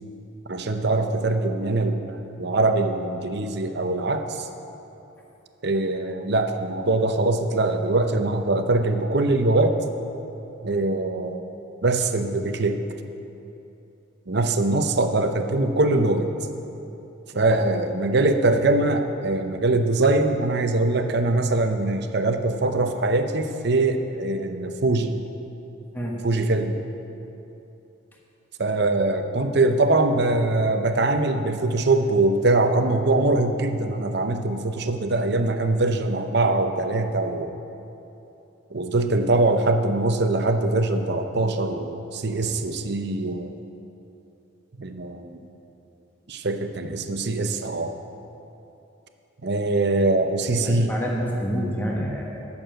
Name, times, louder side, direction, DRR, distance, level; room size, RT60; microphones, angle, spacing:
voice 1, 0.5-4.5 5.6-9.8 10.6-11.4 11.8-12.8 14.3-16.3 17.3-25.2 26.2-26.7 28.6-37.5 38.7-43.5 44.8-45.4 46.3-47.9 49.4-50.9, right 2 dB, 55° right, 7 dB, 0.7 m, -22 dB
voice 2, 50.6-52.4, equal, 10° left, -3 dB, 1.3 m, -28 dB
11.5 x 7.1 x 7.6 m, 2.9 s
head